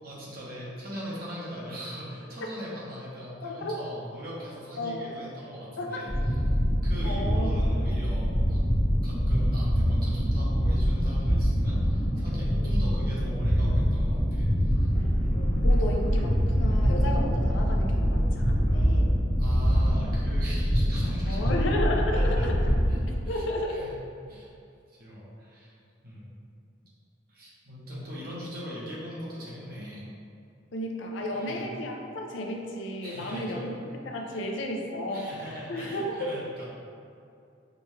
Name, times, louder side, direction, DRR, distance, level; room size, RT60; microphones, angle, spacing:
voice 1, 0.0-6.1 6.5-6.6 6.8-8.6 9.0-14.9 19.4-21.6 22.1-23.9 24.3-24.5 24.9-25.7 26.0-26.3 27.3-30.0 31.3-31.7 33.0-33.8 34.2-34.4 35.1-36.6, equal, 50° right, -7 dB, 0.9 m, -40 dB
voice 2, 3.4-3.7 4.8-5.1 5.8-6.0 7.0-7.6 15.3-19.1 21.3-22.5 23.3-23.8 30.7-33.7 34.1-35.3 35.7-36.2, left 1 dB, 70° left, 1 dB, 0.4 m, -33 dB
sound 1, 6.1-23.0, equal, 40° left, 1.2 m, -24 dB
4.9 x 2.3 x 3.1 m, 2.5 s
head